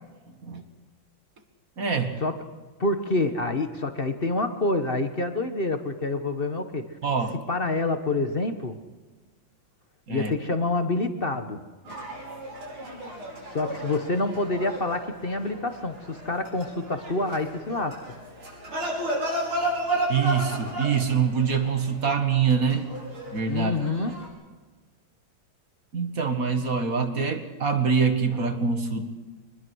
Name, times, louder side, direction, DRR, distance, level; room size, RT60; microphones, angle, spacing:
voice 1, 1.8-2.2 7.0-7.4 10.1-10.3 20.1-22.9 23.3-23.7 25.9-29.1, right 6 dB, 45° right, 7 dB, 2.0 m, -25 dB
voice 2, 2.8-6.9 7.5-8.8 10.1-11.6 13.5-18.0 23.5-24.1, left 2 dB, 35° left, 8 dB, 1.1 m, -27 dB
sound 1, 11.8-24.3, right 1 dB, 90° right, 6.5 m, -34 dB
24.0 x 20.5 x 6.3 m, 1.3 s
omnidirectional pair, 2.3 m